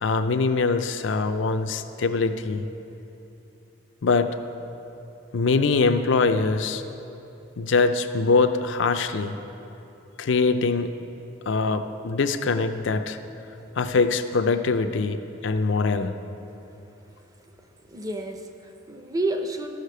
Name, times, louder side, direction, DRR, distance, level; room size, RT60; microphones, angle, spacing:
voice 1, 0.0-2.6 4.0-4.3 5.3-6.8 7.6-9.4 10.2-10.9 11.5-13.2 13.8-16.2, left 4 dB, 65° left, 8 dB, 0.5 m, -23 dB
voice 2, 17.9-19.7, right 2 dB, 15° right, 5 dB, 0.6 m, -30 dB
12.5 x 6.5 x 6.7 m, 2.9 s
head